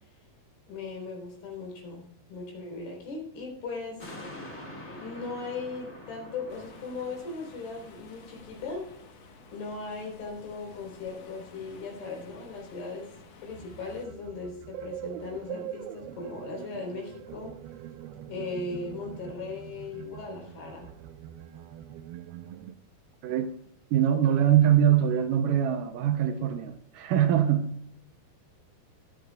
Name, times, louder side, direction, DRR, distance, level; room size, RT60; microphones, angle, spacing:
voice 1, 0.7-2.0 2.3-4.1 5.0-8.9 9.5-13.1 13.4-17.6 18.3-20.9, left 3 dB, 80° left, 5.7 m, -38 dB
sound 1, 4.0-10.6 11.1-11.2, left 1 dB, 30° left, 1.3 m, -47 dB
sound 2, 6.5-14.1, left 5 dB, 60° left, 1.8 m, -53 dB
sound 3, 13.5-22.7, right 12 dB, 90° right, 2.6 m, -43 dB
voice 2, 23.9-27.7, right 10 dB, 75° right, 2.1 m, -23 dB
24.0 x 9.2 x 2.3 m
omnidirectional pair, 4.2 m